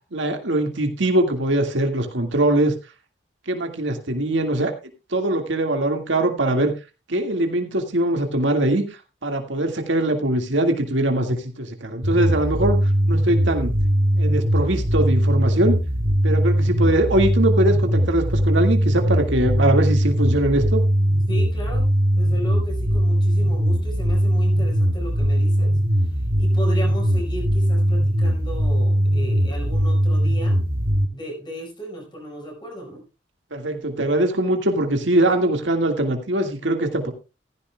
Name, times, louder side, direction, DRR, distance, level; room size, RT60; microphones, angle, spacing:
voice 1, 0.1-2.7 3.5-4.7 5.1-6.7 7.1-8.8 9.2-12.8 13.1-13.7 14.2-15.8 16.2-20.8 33.5-37.1, right 1 dB, 90° right, 5 dB, 1.9 m, -22 dB
sound 1, 12.0-31.0, equal, 50° right, 1.9 m, -20 dB
voice 2, 21.3-21.9 22.2-25.7 26.4-30.6 31.1-33.0, equal, 25° left, 1 dB, 4.9 m, -35 dB
15.5 x 14.5 x 2.2 m, 0.28 s
head